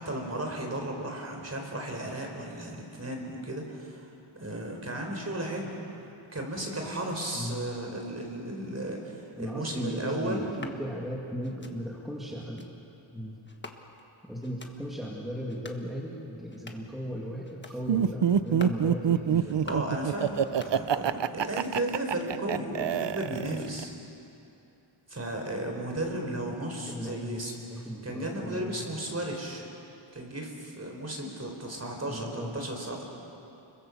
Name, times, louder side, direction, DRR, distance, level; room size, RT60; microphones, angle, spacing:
voice 1, 0.0-4.0 4.4-5.8 6.3-10.5 19.6-23.9 25.1-27.5 28.0-29.7 30.1-33.0, right 1 dB, 30° right, 1 dB, 4.2 m, -34 dB
voice 2, 7.3-7.7 9.4-12.7 13.1-13.4 14.2-19.7 26.9-28.8 32.0-32.6, equal, ahead, -3 dB, 2.3 m, -37 dB
sound 1, 10.4-10.8 11.4-11.8 12.4-12.7 13.5-14.1 14.4-14.8 15.4-15.9 16.4-17.0 17.4-17.8 18.4-18.8 19.4-20.0 20.4-21.1 21.4-22.0, left 2 dB, 20° left, 1.5 m, -47 dB
Laughter, 17.9-23.8, right 8 dB, 60° right, 0.7 m, -26 dB
30.0 x 23.0 x 7.2 m, 2.9 s
wide cardioid pair, 160°, 50 cm